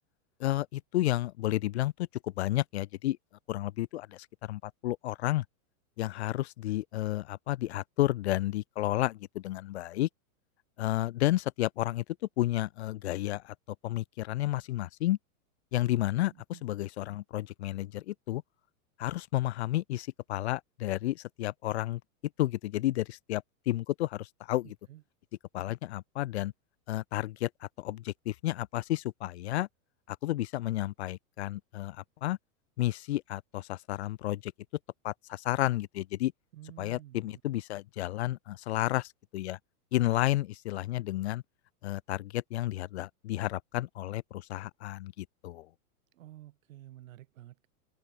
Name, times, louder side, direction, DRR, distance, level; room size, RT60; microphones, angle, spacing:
voice 1, 0.4-1.9 2.2-3.2 3.5-5.4 6.0-10.1 10.8-12.0 12.4-13.5 13.8-15.2 15.7-18.4 19.0-22.0 22.4-24.8 25.5-26.5 26.9-29.7 30.1-32.4 32.8-34.5 35.0-36.3 36.8-39.6 39.9-41.4 41.8-45.7, left 15 dB, 50° left, 0.5 m, -31 dB
voice 2, 16.3-16.6 24.9-25.0 36.5-37.4 46.1-47.7, right 14 dB, 60° right, 2.6 m, -51 dB
open air
supercardioid pair, 165°, 44 cm